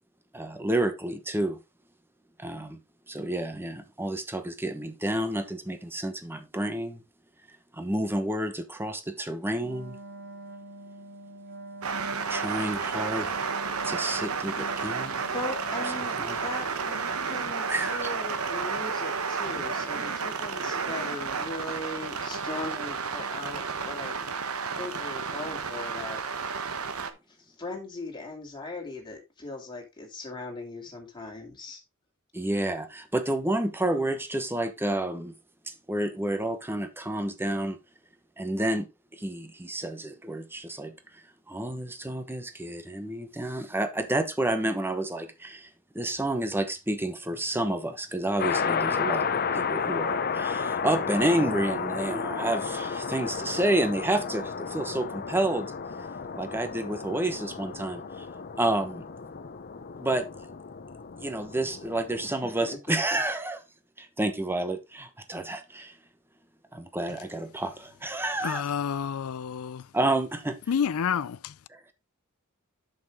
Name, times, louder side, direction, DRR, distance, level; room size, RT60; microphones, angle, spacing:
voice 1, 0.3-1.6 2.4-2.8 3.1-7.0 7.7-10.0 12.3-13.6 13.8-15.2 16.2-16.4 17.7-18.0 32.3-35.3 35.7-37.8 38.4-38.9 39.1-40.9 41.5-45.7 45.9-55.7 56.4-58.2 58.6-59.0 60.0-60.2 61.2-63.6 64.0-66.0 66.7-68.7 69.9-70.6 71.7-71.9, right 1 dB, 10° right, 1.0 m, -30 dB
Wind instrument woodwind instrument, 9.5-16.0, right 1 dB, 55° right, 1.7 m, -45 dB
sound 1, 11.8-27.1, right 5 dB, 85° right, 1.0 m, -32 dB
voice 2, 15.2-16.1 16.4-24.2 24.8-26.2 27.3-31.8 62.2-62.3 62.6-62.8 63.1-63.2, left 2 dB, 20° left, 2.6 m, -39 dB
sound 2, 48.4-62.3, left 6 dB, 45° left, 0.7 m, -32 dB
voice 3, 68.4-69.8 70.7-71.5, left 7 dB, 80° left, 0.4 m, -29 dB
7.7 x 6.6 x 3.6 m
head